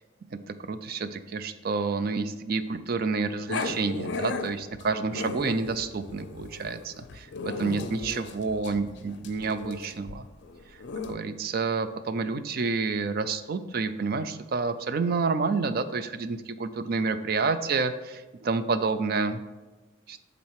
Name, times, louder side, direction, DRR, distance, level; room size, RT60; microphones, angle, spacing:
voice 1, 0.7-10.2 11.1-19.4 20.1-20.2, right 4 dB, 50° right, 11 dB, 0.4 m, -29 dB
Growling, 3.5-11.2, left 4 dB, 60° left, 0.5 m, -36 dB
7.2 x 4.1 x 4.7 m, 1.2 s
head